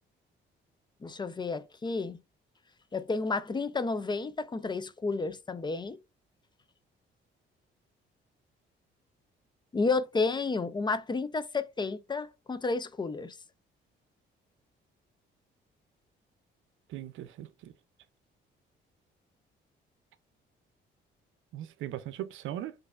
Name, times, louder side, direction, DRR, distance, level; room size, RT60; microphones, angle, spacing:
voice 1, 1.0-2.2 2.9-6.0 9.7-13.4, left 3 dB, 20° left, 0.4 m, -31 dB
voice 2, 16.9-17.7 21.5-22.7, right 12 dB, 80° right, 0.6 m, -39 dB
4.4 x 2.6 x 2.4 m
cardioid pair, 90°, 20 cm